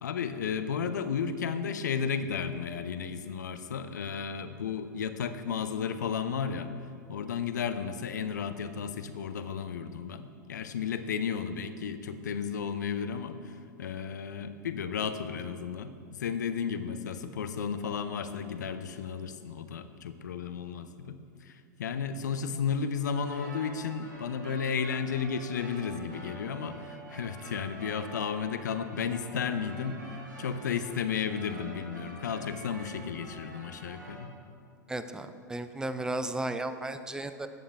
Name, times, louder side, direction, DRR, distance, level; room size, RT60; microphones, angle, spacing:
voice 1, 0.0-6.7 7.1-34.3, left 6 dB, 70° left, 10 dB, 0.7 m, -33 dB
sound 1, 23.1-34.2, right 2 dB, 85° right, 2.2 m, -47 dB
voice 2, 34.9-37.5, right 2 dB, 5° right, 10 dB, 0.6 m, -34 dB
14.5 x 8.6 x 3.5 m, 2.3 s
figure-of-eight pair, 90°, 10 cm